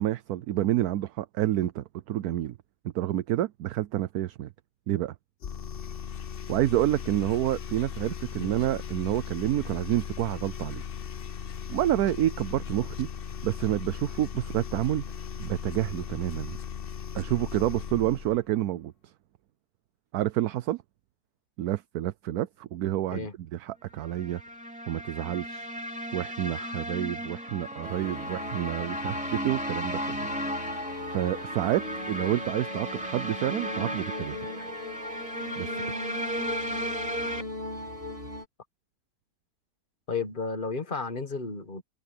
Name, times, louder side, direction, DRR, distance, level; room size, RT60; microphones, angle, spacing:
voice 1, 0.0-2.6 2.9-4.5 4.9-5.1 6.5-10.8 11.7-13.1 13.4-15.0 15.4-16.6 17.1-18.9 20.1-20.8 21.6-24.4 24.9-25.7 26.1-30.6 31.1-34.6 35.6-35.7, right 13 dB, 70° right, 1.1 m, -29 dB
sound 1, 5.4-18.4, left 7 dB, 50° left, 0.6 m, -38 dB
sound 2, 24.0-37.4, equal, 5° right, 3.5 m, -35 dB
sound 3, 27.8-38.4, left 1 dB, 35° right, 3.0 m, -39 dB
voice 2, 40.1-41.8, left 4 dB, 30° left, 1.4 m, -33 dB
omnidirectional pair, 1.8 m